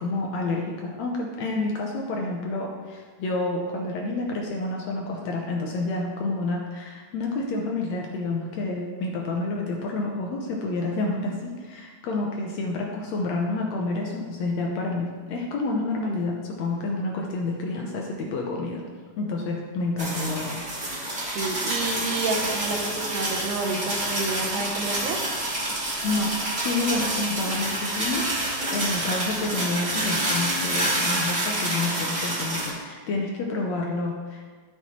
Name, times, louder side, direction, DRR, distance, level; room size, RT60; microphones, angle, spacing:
voice 1, 0.0-18.8 19.2-20.6 26.0-28.2 28.7-34.5, left 2 dB, 70° left, 0 dB, 1.8 m, -29 dB
sound 1, 20.0-32.7, right 1 dB, 25° right, 1.7 m, -28 dB
voice 2, 21.4-25.2, right 3 dB, 75° right, 2 dB, 2.2 m, -29 dB
12.5 x 5.6 x 3.0 m, 1.5 s
omnidirectional pair, 3.7 m